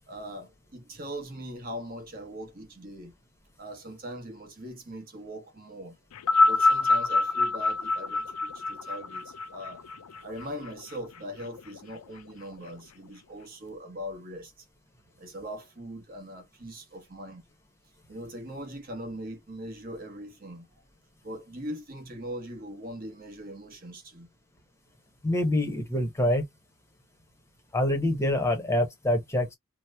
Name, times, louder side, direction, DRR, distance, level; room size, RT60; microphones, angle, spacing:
voice 1, 0.1-3.1 3.6-6.0 6.4-9.8 10.2-14.6 15.2-17.4 18.1-20.7 21.2-24.3, equal, 40° right, 1.0 m, -40 dB
sound 1, 6.2-10.7 11.6-11.7, left 3 dB, 80° left, 0.4 m, -25 dB
voice 2, 25.2-26.4 27.7-29.5, left 1 dB, 10° left, 0.9 m, -25 dB
2.9 x 2.0 x 3.4 m
head